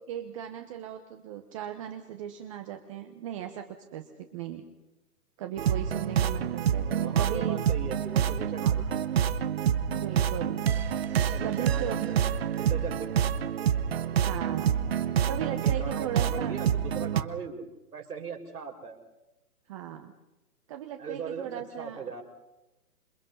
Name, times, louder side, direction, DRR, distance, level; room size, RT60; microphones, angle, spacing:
voice 1, 0.1-4.6 5.4-7.6 9.9-10.6 11.0-12.1 14.2-14.7 15.3-16.6 19.7-20.1 20.7-22.0, right 10 dB, 20° right, 6 dB, 1.1 m, -37 dB
sound 1, 5.6-17.2, right 9 dB, 40° right, 1.1 m, -27 dB
voice 2, 6.8-8.8 11.3-12.3 12.5-13.1 15.5-17.6 17.9-19.0 21.0-22.2, right 6 dB, 80° right, 3 dB, 5.7 m, -39 dB
27.5 x 22.5 x 5.6 m, 1.0 s
hypercardioid pair, 155°, 46 cm